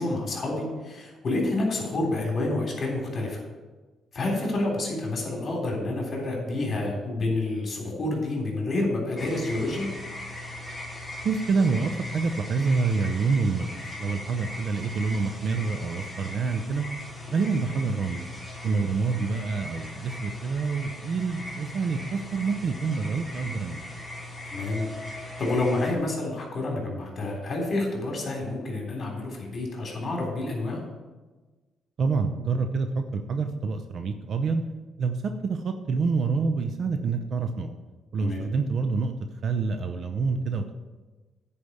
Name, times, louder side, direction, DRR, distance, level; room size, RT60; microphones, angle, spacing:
voice 1, 0.0-3.4 4.1-9.9 24.5-24.9 25.1-30.8 38.2-38.5, left 2 dB, 45° left, 0 dB, 3.5 m, -28 dB
sound 1, 9.1-25.9, left 1 dB, 10° left, 3.1 m, -39 dB
voice 2, 11.2-16.9 17.3-18.3 18.6-23.8 32.0-34.6 35.0-37.7 38.1-39.1 39.4-40.7, right 4 dB, 55° right, 7 dB, 0.7 m, -27 dB
9.9 x 5.2 x 8.1 m, 1.3 s
cardioid pair, 90°, 0 cm